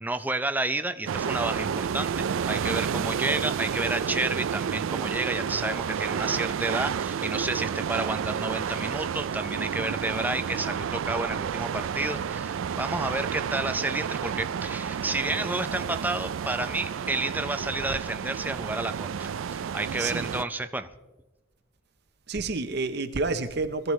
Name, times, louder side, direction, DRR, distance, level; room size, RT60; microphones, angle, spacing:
voice 1, 0.0-20.9, right 2 dB, 10° right, 10 dB, 0.5 m, -31 dB
sound 1, 1.1-20.4, right 7 dB, 70° right, 0.4 m, -30 dB
voice 2, 20.0-20.3 22.3-23.9, right 3 dB, 55° right, 8 dB, 0.8 m, -29 dB
21.5 x 14.5 x 3.2 m, 1.1 s
head